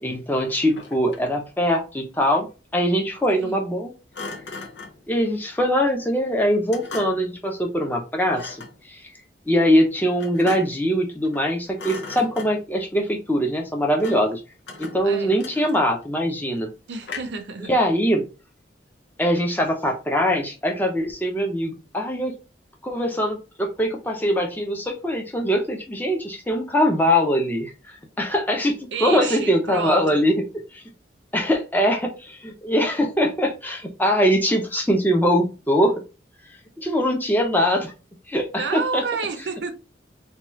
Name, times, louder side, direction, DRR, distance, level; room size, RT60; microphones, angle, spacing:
voice 1, 0.0-2.5 2.7-3.9 5.1-9.0 9.5-14.4 14.8-16.7 17.7-18.2 19.2-22.3 22.8-30.4 30.7-30.8 31.3-36.0 36.8-37.9 38.3-39.0, equal, 10° left, 0.6 m, -22 dB
Thump thud, 0.6-1.4 4.1-5.0 6.7-7.4 8.3-8.8 10.2-10.9 11.2-11.5 11.8-12.8 14.0-14.4 14.7-16.0 17.0-17.5, left 3 dB, 75° left, 0.6 m, -38 dB
voice 2, 15.0-15.4 16.9-17.8 28.9-30.0 38.6-39.7, right 5 dB, 70° right, 0.5 m, -30 dB
2.8 x 2.3 x 3.0 m
head